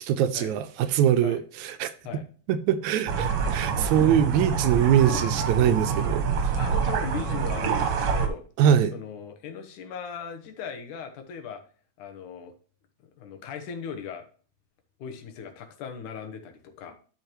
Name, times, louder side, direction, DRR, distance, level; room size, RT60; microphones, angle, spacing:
voice 1, 0.1-1.9 2.5-6.5 8.6-8.9, right 9 dB, 80° right, 1.9 m, -23 dB
sound 1, 3.1-8.3, right 6 dB, 60° right, 1.8 m, -26 dB
voice 2, 6.6-8.4 8.9-11.6 12.0-12.5 13.2-14.2 15.0-17.0, left 7 dB, 80° left, 2.7 m, -38 dB
12.0 x 5.2 x 3.0 m
omnidirectional pair, 3.5 m